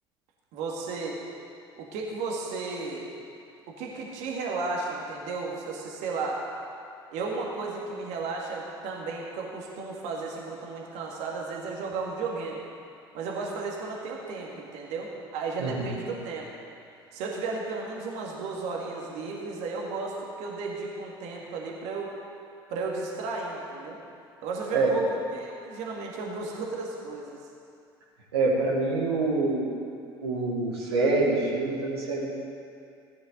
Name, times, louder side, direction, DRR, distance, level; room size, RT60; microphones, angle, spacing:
voice 1, 0.5-1.2 1.8-3.1 3.7-6.4 7.1-12.6 13.1-16.5 17.1-22.1 22.7-24.0 24.4-25.0 25.3-27.4, right 4 dB, 60° right, -2 dB, 1.9 m, -34 dB
voice 2, 15.6-15.9 24.7-24.9 28.3-29.7 30.2-32.3, right 3 dB, 80° right, -5 dB, 1.7 m, -26 dB
15.5 x 9.8 x 3.9 m, 2.5 s
figure-of-eight pair, 65°, 13 cm